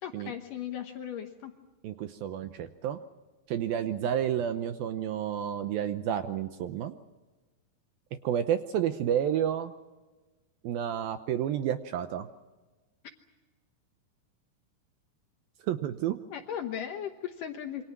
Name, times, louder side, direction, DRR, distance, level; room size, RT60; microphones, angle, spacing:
voice 1, 0.0-1.5 16.3-17.8, left 9 dB, 70° left, 5 dB, 2.3 m, -37 dB
voice 2, 1.8-3.0 3.5-7.0 8.2-9.7 10.6-12.3 15.7-16.2, right 10 dB, 75° right, 9 dB, 2.4 m, -30 dB
27.0 x 25.0 x 6.0 m, 1.2 s
omnidirectional pair, 4.9 m